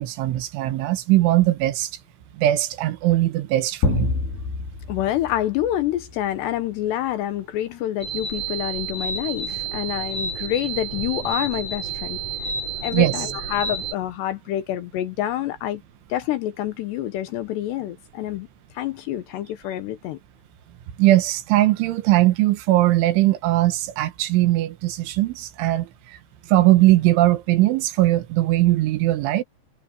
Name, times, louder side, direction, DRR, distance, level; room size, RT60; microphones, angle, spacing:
voice 1, 0.0-1.9 2.4-4.1 12.9-13.1 21.0-26.2 26.5-29.4, right 15 dB, 80° right, 3.6 m, -20 dB
sound 1, 3.8-6.4, left 3 dB, 55° left, 6.5 m, -27 dB
voice 2, 4.9-12.2 12.8-15.8 16.1-18.5 18.7-20.2, left 12 dB, 75° left, 2.8 m, -27 dB
sound 2, 8.0-13.9, right 4 dB, 35° right, 6.0 m, -30 dB
omnidirectional pair, 5.6 m